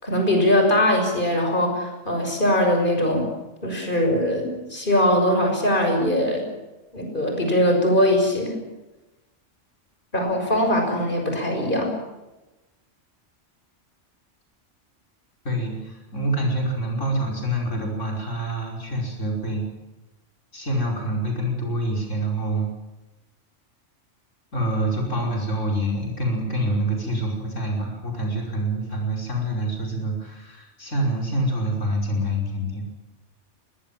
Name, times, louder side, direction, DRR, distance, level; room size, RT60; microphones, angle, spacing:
voice 1, 0.0-3.3 3.6-6.5 6.9-8.6 10.1-12.0, left 1 dB, 45° left, 3 dB, 6.5 m, -21 dB
voice 2, 15.4-19.6 20.5-22.7 24.5-32.8, right 1 dB, 85° left, 0 dB, 5.7 m, -26 dB
23.5 x 20.5 x 7.5 m, 1.0 s
omnidirectional pair, 1.2 m